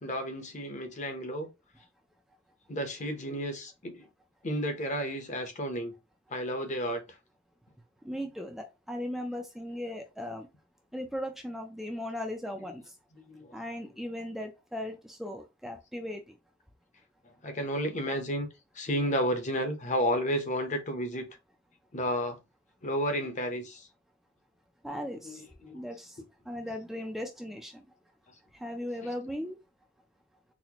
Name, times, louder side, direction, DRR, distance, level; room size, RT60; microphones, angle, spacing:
voice 1, 0.0-1.5 2.7-4.1 4.4-5.9 6.3-7.0 13.3-13.5 17.4-18.5 18.7-21.3 21.9-22.4 22.8-23.9 25.2-25.4 25.6-25.8, equal, 35° left, 0.8 m, -32 dB
voice 2, 8.0-10.5 10.9-12.8 13.5-16.3 24.8-25.4 25.7-26.2 26.5-27.8 28.5-29.6, left 1 dB, ahead, 0.4 m, -37 dB
4.1 x 2.2 x 2.9 m
head